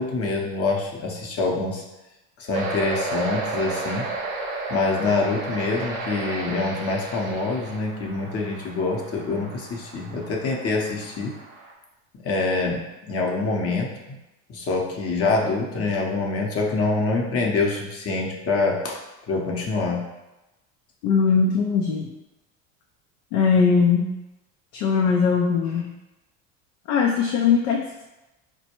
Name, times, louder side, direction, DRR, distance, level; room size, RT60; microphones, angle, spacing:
voice 1, 0.0-1.8 2.4-4.1 4.7-11.4 12.2-14.2 14.5-19.0 19.3-20.0, left 3 dB, 40° left, -1 dB, 0.8 m, -25 dB
sound 1, 2.5-11.7, right 3 dB, 90° right, 0.7 m, -33 dB
voice 2, 21.0-22.1 23.3-24.1 24.7-25.9 26.9-27.9, left 5 dB, 80° left, 0 dB, 0.6 m, -20 dB
4.2 x 2.2 x 2.9 m, 1.0 s
supercardioid pair, 95°, 38 cm